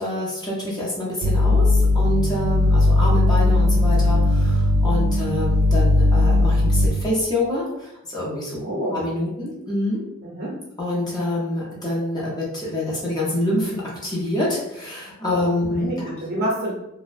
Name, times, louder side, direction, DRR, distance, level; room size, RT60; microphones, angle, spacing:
voice 1, 0.0-8.6 8.9-10.0 10.8-15.9, left 1 dB, 20° left, -5 dB, 0.6 m, -26 dB
sound 1, 1.2-6.9, left 2 dB, 85° right, 0.3 m, -18 dB
voice 2, 8.6-9.0 10.2-10.6 15.7-16.7, right 1 dB, 45° right, -3 dB, 0.7 m, -27 dB
2.5 x 2.0 x 2.4 m, 0.88 s
head